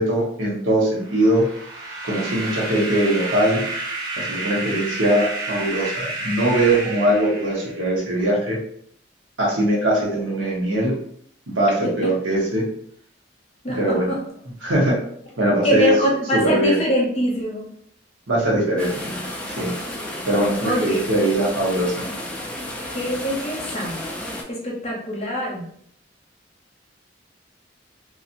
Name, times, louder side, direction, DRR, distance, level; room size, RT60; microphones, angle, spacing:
voice 1, 0.0-1.5 2.0-3.6 4.2-8.6 9.4-10.9 11.5-12.7 13.8-14.1 14.6-15.0 15.4-15.9 16.3-16.8 18.3-19.2 19.6-19.7 20.3-22.0, right 1 dB, 85° right, -3 dB, 0.9 m, -21 dB
sound 1, 1.0-8.0, right 2 dB, 55° right, 0.8 m, -30 dB
voice 2, 13.6-14.2 15.6-17.7 20.6-21.0 22.9-24.0 24.5-25.6, equal, 35° left, -2 dB, 0.7 m, -23 dB
sound 2, 18.8-24.4, left 1 dB, 5° left, 0.3 m, -32 dB
2.8 x 2.4 x 2.5 m, 0.66 s
head